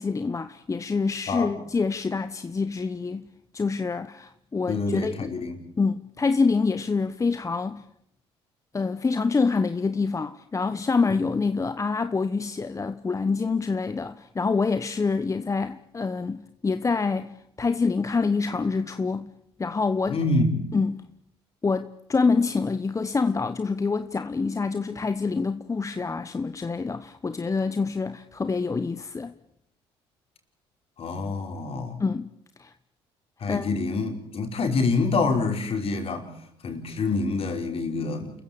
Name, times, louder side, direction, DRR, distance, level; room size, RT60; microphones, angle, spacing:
voice 1, 0.0-3.3 3.5-5.3 5.8-7.8 8.7-19.3 19.6-20.2 20.7-21.0 21.6-29.3 32.0-32.3 32.6-32.7 33.5-33.8, left 4 dB, 25° left, 1.1 m, -26 dB
voice 2, 4.7-5.6 20.1-20.7 31.0-32.0 33.4-36.3 36.6-38.3, left 3 dB, 50° left, 5.4 m, -26 dB
29.0 x 15.5 x 8.9 m
supercardioid pair, 65°, 12 cm